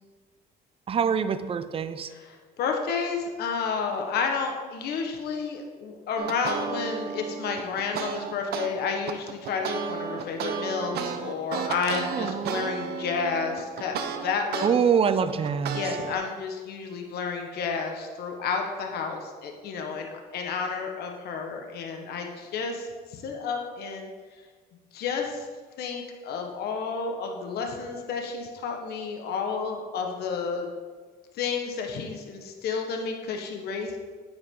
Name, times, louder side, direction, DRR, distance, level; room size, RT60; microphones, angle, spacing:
voice 1, 0.9-2.1 12.1-12.7 14.6-16.0, right 7 dB, 35° right, 12 dB, 0.6 m, -25 dB
voice 2, 2.6-14.7 15.7-24.1 24.9-25.5 25.8-30.7 31.3-34.0, left 5 dB, 70° left, 3 dB, 1.3 m, -31 dB
sound 1, 6.2-8.7 9.1-14.7 15.1-16.1, right 7 dB, 70° right, 0.8 m, -33 dB
9.5 x 8.4 x 3.8 m, 1.5 s
cardioid pair, 110°, 17 cm